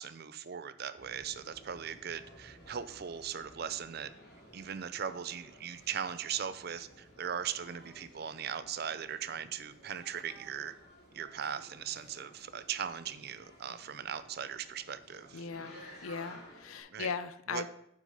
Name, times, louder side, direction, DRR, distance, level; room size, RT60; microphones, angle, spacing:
voice 1, 0.0-4.1 4.5-10.7 11.1-15.5 16.9-17.1 17.5-17.6, right 8 dB, 50° right, 13 dB, 0.5 m, -39 dB
sound 1, 0.9-16.8, equal, 50° left, 3.1 m, -55 dB
voice 2, 15.3-17.7, left 5 dB, 85° left, 13 dB, 0.6 m, -39 dB
7.6 x 6.2 x 5.4 m, 0.72 s
head